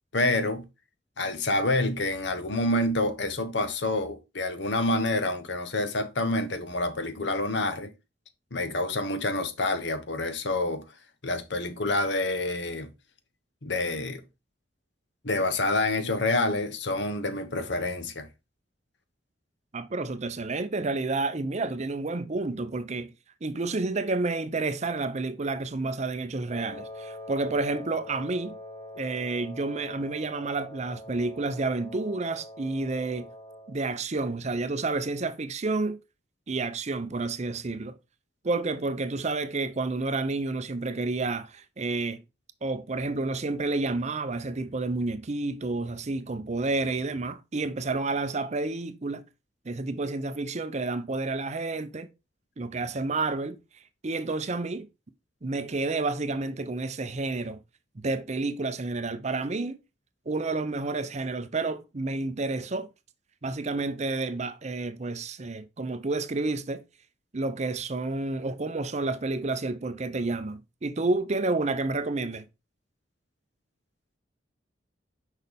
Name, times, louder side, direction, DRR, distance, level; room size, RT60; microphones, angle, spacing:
voice 1, 0.1-0.6 1.2-7.9 8.5-10.8 11.2-12.9 13.6-14.2 15.2-18.3, left 2 dB, 65° left, 1.0 m, -27 dB
voice 2, 19.7-23.1 23.4-28.6 29.0-33.3 33.7-36.0 36.5-38.0 38.4-42.2 42.6-49.2 49.6-52.1 52.6-53.6 54.0-54.9 55.4-57.6 58.0-59.8 60.3-62.9 63.4-66.8 67.3-72.5, right 3 dB, 40° right, 0.6 m, -30 dB
Wind instrument woodwind instrument, 26.5-33.8, equal, 20° left, 1.4 m, -44 dB
6.3 x 5.4 x 3.5 m
head